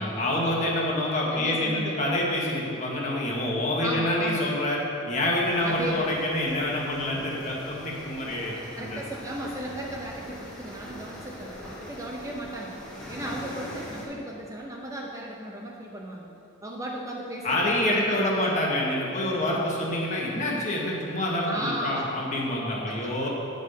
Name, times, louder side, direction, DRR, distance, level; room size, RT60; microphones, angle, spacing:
voice 1, 0.0-4.8 5.1-9.0 17.4-23.3, left 1 dB, 35° left, -3 dB, 1.4 m, -27 dB
voice 2, 1.3-2.0 3.8-4.5 5.6-6.1 8.7-12.8 13.1-16.3 16.6-18.5 21.5-22.1 22.9-23.1, right 1 dB, 15° right, -1 dB, 0.6 m, -35 dB
sound 1, 5.4-14.1, left 1 dB, 5° left, 1.7 m, -43 dB
8.4 x 5.3 x 5.4 m, 2.7 s
head